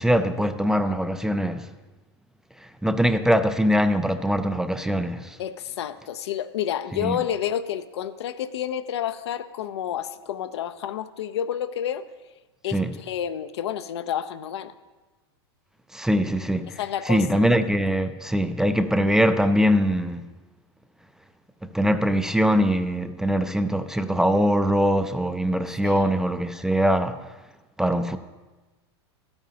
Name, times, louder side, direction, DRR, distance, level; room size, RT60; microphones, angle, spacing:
voice 1, 0.0-1.7 2.8-5.4 7.0-7.2 12.7-12.9 15.9-16.8 17.1-20.3 21.6-27.2 27.8-28.2, equal, 5° right, 0.3 m, -22 dB
voice 2, 5.4-12.0 12.6-14.7 16.8-17.5 25.8-26.1, left 10 dB, 80° left, 0.5 m, -30 dB
13.0 x 8.9 x 2.8 m
hypercardioid pair, 110°, 14 cm